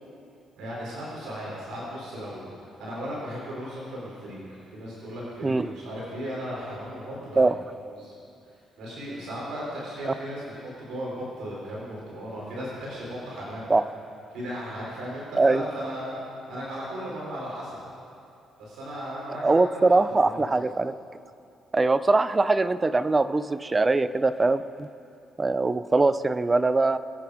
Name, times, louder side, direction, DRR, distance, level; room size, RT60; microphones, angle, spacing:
voice 1, 0.6-7.4 7.9-8.1 8.8-13.7 14.3-16.2 16.5-17.8 18.6-20.0 20.2-20.4, equal, 80° right, -6 dB, 4.6 m, -36 dB
voice 2, 5.4-5.7 7.4-7.6 13.7-13.8 15.4-15.6 19.3-20.9 21.7-24.9 25.4-27.0, right 3 dB, 25° right, 14 dB, 0.5 m, -22 dB
24.0 x 9.4 x 5.1 m, 2.6 s
cardioid pair, 90°, 0 cm